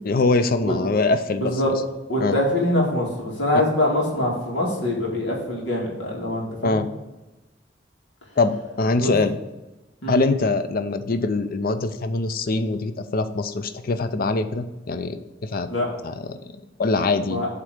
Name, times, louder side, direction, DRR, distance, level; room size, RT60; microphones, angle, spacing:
voice 1, 0.0-1.7 2.2-2.4 6.6-6.9 8.4-9.4 10.1-15.7 16.0-17.4, left 3 dB, 55° left, 10 dB, 0.5 m, -23 dB
voice 2, 1.4-1.7 2.1-6.8 9.0-9.1 10.0-10.2 15.7-15.9 17.3-17.5, left 1 dB, 85° left, -3 dB, 2.3 m, -24 dB
7.9 x 3.7 x 6.5 m, 1.0 s
head